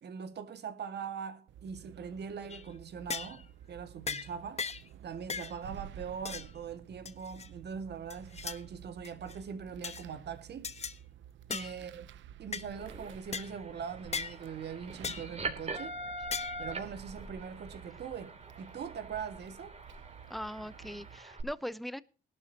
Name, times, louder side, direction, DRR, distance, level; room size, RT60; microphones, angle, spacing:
voice 1, 0.0-4.6 5.0-10.7 11.5-12.1 12.4-15.9 16.6-19.7, right 6 dB, 55° right, 2.1 m, -42 dB
sound 1, 1.5-21.2, right 11 dB, 75° right, 0.8 m, -52 dB
sound 2, 2.5-2.7 3.1-3.4 4.1-4.3 4.6-4.9 5.3-5.5 6.2-6.5 7.0-7.5 8.1-8.6 9.0-9.4 9.8-10.0 10.6-11.0 11.5-11.7 12.5-12.7 13.3-13.5 14.1-14.3 15.0-15.3 16.3-16.6, left 5 dB, 35° left, 1.1 m, -37 dB
sound 3, 12.7-21.4, right 2 dB, 30° right, 3.1 m, -44 dB
voice 2, 20.3-22.0, equal, ahead, 0.8 m, -40 dB
19.5 x 12.0 x 2.9 m
cardioid pair, 90°, 20 cm